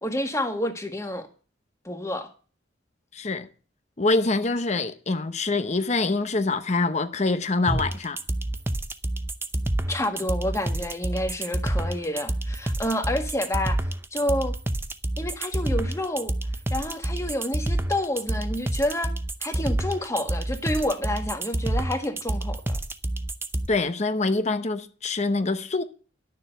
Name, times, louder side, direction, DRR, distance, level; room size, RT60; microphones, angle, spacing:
voice 1, 0.0-1.3 1.8-2.3 9.9-13.8 14.1-14.5 15.2-16.3 16.7-19.1 19.4-22.8, left 1 dB, 15° left, 1.7 m, -29 dB
voice 2, 3.1-3.5 4.0-8.2 23.7-25.8, left 3 dB, 35° left, 0.8 m, -25 dB
sound 1, 7.7-23.7, right 1 dB, 15° right, 0.7 m, -28 dB
12.0 x 6.8 x 7.9 m
head